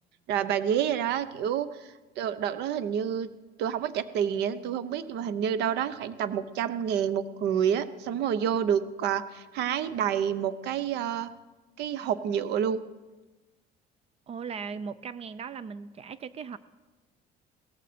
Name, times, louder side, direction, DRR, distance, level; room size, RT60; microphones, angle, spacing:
voice 1, 0.3-1.7 2.2-3.3 3.6-11.3 11.8-12.8, right 8 dB, 70° right, 15 dB, 0.8 m, -28 dB
voice 2, 14.3-16.6, right 6 dB, 35° right, 16 dB, 0.5 m, -38 dB
17.0 x 14.5 x 4.3 m, 1.2 s
cardioid pair, 125°, 18 cm